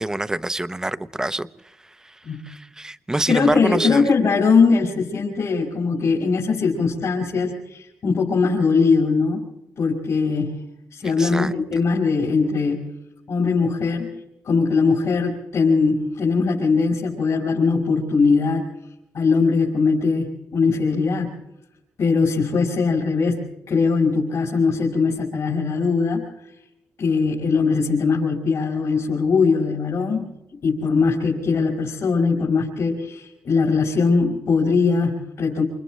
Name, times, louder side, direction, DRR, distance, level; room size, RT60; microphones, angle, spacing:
voice 1, 0.0-1.5 2.0-2.2 2.4-4.1 11.0-11.5, right 1 dB, 10° right, 13 dB, 0.7 m, -26 dB
voice 2, 3.3-9.4 9.8-10.6 10.9-12.8 13.3-14.1 14.4-18.6 19.1-21.3 22.0-23.4 23.7-26.5 27.0-30.3 30.6-35.6, left 4 dB, 65° left, -2 dB, 5.3 m, -20 dB
28.5 x 28.5 x 3.2 m, 0.90 s
cardioid pair, 125°, 6 cm